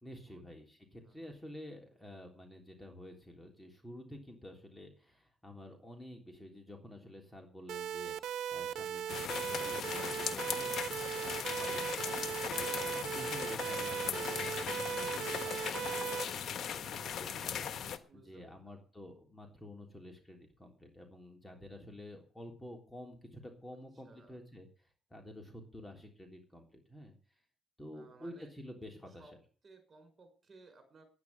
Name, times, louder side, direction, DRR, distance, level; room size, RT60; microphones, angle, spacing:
voice 1, 0.0-10.7 11.2-27.1 27.8-29.3, left 1 dB, 10° left, 2 dB, 3.5 m, -50 dB
sound 1, 7.7-16.2, right 9 dB, 80° right, 1.0 m, -38 dB
sound 2, 9.1-18.0, left 8 dB, 65° left, 1.2 m, -38 dB
voice 2, 18.1-18.8 24.0-24.4 27.9-28.5 29.2-29.3 29.6-31.0, right 3 dB, 40° right, 7 dB, 5.5 m, -59 dB
11.0 x 9.5 x 10.0 m, 0.42 s
cardioid pair, 90°, 0 cm